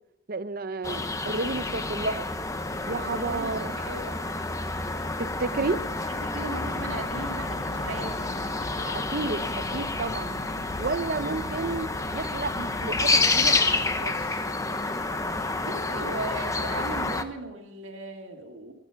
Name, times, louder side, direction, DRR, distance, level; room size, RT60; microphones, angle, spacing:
voice 1, 0.3-2.3 2.9-3.7 5.2-5.8 8.9-10.4 10.8-14.4, right 3 dB, 45° right, 13 dB, 0.7 m, -31 dB
sound 1, 0.8-17.2, left 3 dB, 15° left, 0.8 m, -29 dB
voice 2, 3.1-4.3 5.6-5.7 6.1-8.4 11.2-11.4 15.6-18.7, right 2 dB, 70° right, 3 dB, 2.1 m, -38 dB
sound 2, 6.7-14.0, left 2 dB, 75° left, 1.1 m, -41 dB
19.5 x 9.9 x 5.7 m, 0.87 s
head